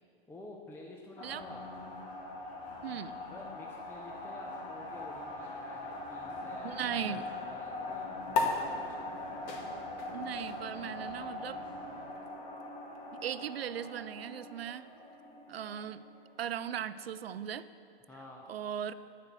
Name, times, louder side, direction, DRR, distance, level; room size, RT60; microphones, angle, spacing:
voice 1, 0.3-1.6 3.3-8.1 8.4-9.0 15.2-15.6 18.1-18.5, left 2 dB, 5° left, 0 dB, 0.6 m, -50 dB
sound 1, 1.2-17.0, left 2 dB, 25° left, 2.1 m, -43 dB
voice 2, 2.8-3.2 6.6-7.2 10.1-11.6 13.1-14.8 15.5-16.0 16.4-17.7 18.5-18.9, right 9 dB, 80° right, 15 dB, 0.5 m, -38 dB
sound 2, 8.3-15.1, left 3 dB, 50° left, 1.4 m, -39 dB
10.0 x 7.5 x 6.0 m, 2.4 s
hypercardioid pair, 120°, 30 cm